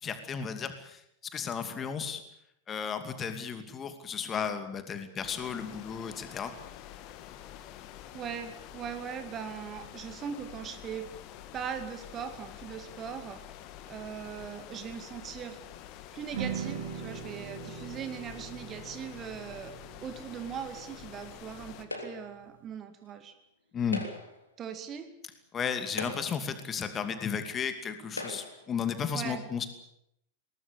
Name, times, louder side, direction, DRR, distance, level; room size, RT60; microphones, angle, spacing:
voice 1, 0.0-2.2 2.7-6.5 23.7-24.1 25.5-29.7, left 6 dB, 25° left, 8 dB, 2.6 m, -34 dB
sound 1, 5.2-21.8, left 11 dB, 40° left, 2.0 m, -48 dB
voice 2, 8.1-11.1 11.5-13.4 13.9-15.6 16.1-19.8 20.0-23.3 24.6-25.1 29.1-29.5, right 7 dB, 30° right, 9 dB, 2.2 m, -40 dB
sound 2, 16.3-22.6, right 7 dB, 60° right, 3.7 m, -42 dB
sound 3, 21.9-22.4 23.8-24.4 25.3-25.4 25.9-26.5 27.4-27.5 28.1-28.7, left 2 dB, 80° left, 3.3 m, -40 dB
21.5 x 19.0 x 8.5 m, 0.76 s
figure-of-eight pair, 90°, 0 cm